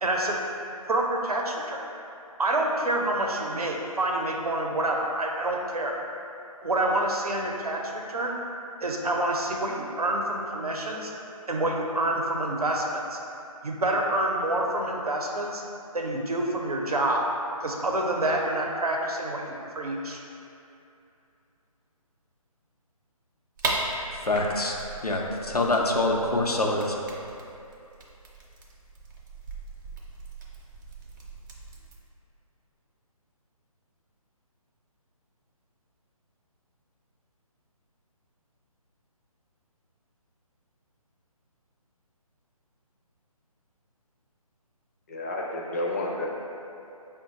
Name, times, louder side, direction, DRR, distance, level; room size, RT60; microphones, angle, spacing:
voice 1, 0.0-0.4 0.9-1.8 2.4-6.0 6.6-8.4 8.8-11.1 11.5-13.2 13.6-15.6 15.9-17.2 17.6-20.2, right 1 dB, 80° right, 0 dB, 0.7 m, -27 dB
sound 1, 23.6-32.0, right 2 dB, 30° right, 0.5 m, -37 dB
voice 2, 24.3-24.8 25.0-27.0, left 2 dB, 90° left, 0 dB, 0.6 m, -25 dB
voice 3, 45.1-46.3, left 1 dB, 25° left, -2 dB, 0.4 m, -30 dB
5.3 x 2.2 x 4.0 m, 2.7 s
figure-of-eight pair, 145°, 19 cm